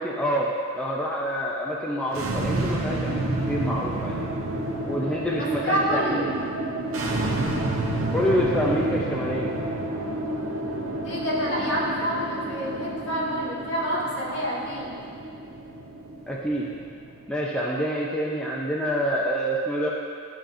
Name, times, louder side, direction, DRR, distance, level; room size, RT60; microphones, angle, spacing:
voice 1, 0.0-4.2 4.8-6.5 8.0-9.5 16.3-16.7 17.3-19.9, equal, 5° left, -5 dB, 0.4 m, -27 dB
sound 1, 2.0-17.3, right 1 dB, 75° right, 0.8 m, -30 dB
voice 2, 5.3-6.3 11.0-14.9 17.6-17.8, equal, 55° left, -7 dB, 1.9 m, -28 dB
11.5 x 5.5 x 2.6 m, 2.3 s
head